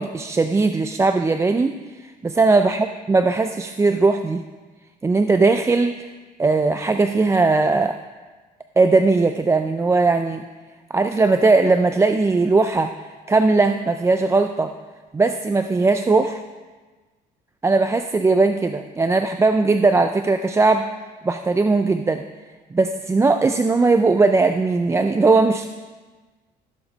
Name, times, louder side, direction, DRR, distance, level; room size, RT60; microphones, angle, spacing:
voice 1, 0.0-1.7 2.2-4.4 5.0-5.9 6.4-8.0 8.8-10.4 10.9-12.9 13.3-14.7 15.1-16.4 17.6-20.9 21.2-22.2 22.7-25.7, right 3 dB, 15° right, 7 dB, 0.4 m, -18 dB
14.5 x 7.2 x 4.1 m, 1.3 s
cardioid pair, 110°, 17 cm